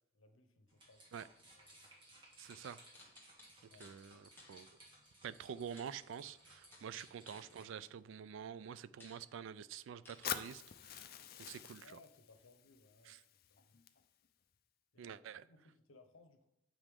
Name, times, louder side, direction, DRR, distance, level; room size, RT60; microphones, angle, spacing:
voice 1, 0.1-1.8 3.7-4.7 6.9-7.0 11.8-13.2 13.5-13.8 14.9-16.5, left 3 dB, 80° left, 0.9 m, -65 dB
sound 1, 0.7-7.9, right 1 dB, 25° right, 1.6 m, -62 dB
voice 2, 2.4-2.8 3.8-4.7 5.2-11.1 11.4-11.9 13.1-13.2 15.0-15.4, right 8 dB, 65° right, 0.3 m, -48 dB
Friction caps of mineral water, 2.9-4.0 4.4-4.6 5.8-6.4 6.7-8.1 8.6-8.7 9.0-9.3 10.0-10.3, left 2 dB, 10° left, 1.1 m, -60 dB
Fire, 10.2-14.3, left 9 dB, 45° left, 0.4 m, -46 dB
7.7 x 5.0 x 3.7 m
head